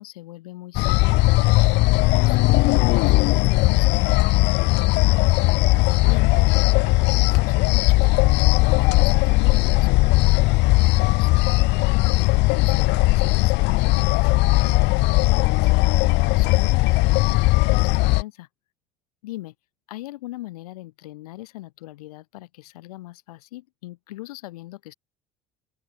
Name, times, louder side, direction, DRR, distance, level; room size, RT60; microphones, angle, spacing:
voice 1, 0.0-2.0 2.2-5.0 5.8-11.4 12.1-18.5 19.2-19.5 19.9-24.9, left 17 dB, 85° left, 7.7 m, -40 dB
sound 1, 0.7-18.2, left 22 dB, 70° left, 1.4 m, -18 dB
open air
hypercardioid pair, 75°, 19 cm